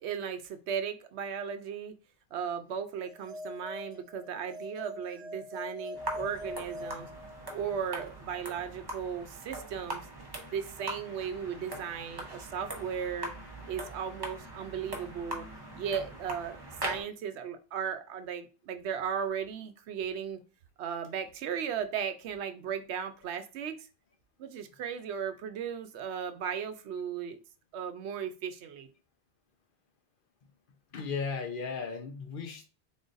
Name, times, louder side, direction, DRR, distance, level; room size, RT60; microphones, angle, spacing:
voice 1, 0.0-1.9 2.3-7.1 7.5-10.1 10.5-13.3 13.7-15.5 15.8-16.6 16.8-20.4 20.8-23.9 24.4-27.4 27.7-28.9, right 7 dB, 85° right, 9 dB, 0.9 m, -36 dB
sound 1, 3.0-7.8, left 1 dB, 55° right, 0.4 m, -43 dB
sound 2, 5.9-17.0, right 1 dB, 25° right, 0.8 m, -41 dB
voice 2, 30.9-32.7, left 5 dB, 55° left, 5 dB, 0.8 m, -35 dB
3.8 x 3.7 x 2.5 m, 0.33 s
omnidirectional pair, 1.1 m